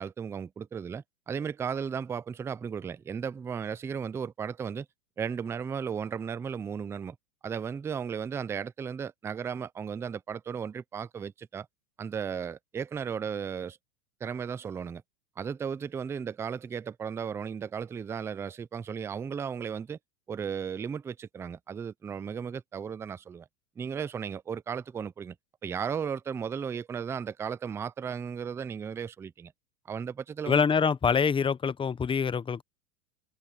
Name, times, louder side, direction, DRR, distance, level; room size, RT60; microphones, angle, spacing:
voice 1, 0.0-4.9 5.2-7.2 7.4-11.7 12.0-13.8 14.2-15.0 15.4-20.0 20.3-23.5 23.8-25.4 25.6-29.5 29.9-30.6, right 7 dB, 5° right, 0.3 m, -35 dB
voice 2, 30.5-32.6, left 6 dB, 10° left, 0.9 m, -25 dB
hypercardioid pair, 115°, 42 cm